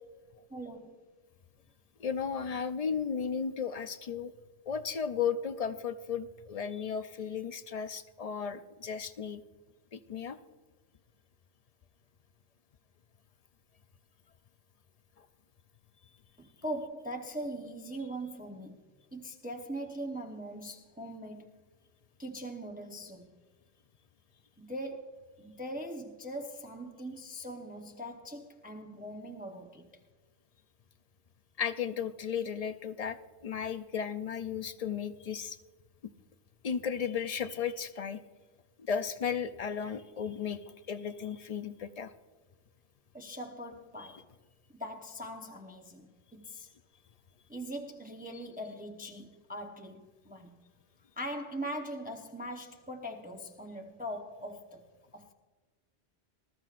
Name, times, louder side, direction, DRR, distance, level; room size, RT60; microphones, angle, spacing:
voice 1, 0.5-1.0 16.4-21.6 22.2-23.3 24.6-29.9 43.1-44.3 44.7-46.7 47.5-50.6 51.2-54.9 55.1-55.3, right 1 dB, 10° right, 0.8 m, -41 dB
voice 2, 2.0-4.3 4.7-9.4 9.9-10.4 31.6-33.2 33.4-35.6 36.6-38.2 38.8-40.6 40.9-42.1 44.0-44.1, left 7 dB, 50° left, 0.4 m, -34 dB
20.0 x 13.5 x 2.5 m
omnidirectional pair, 1.2 m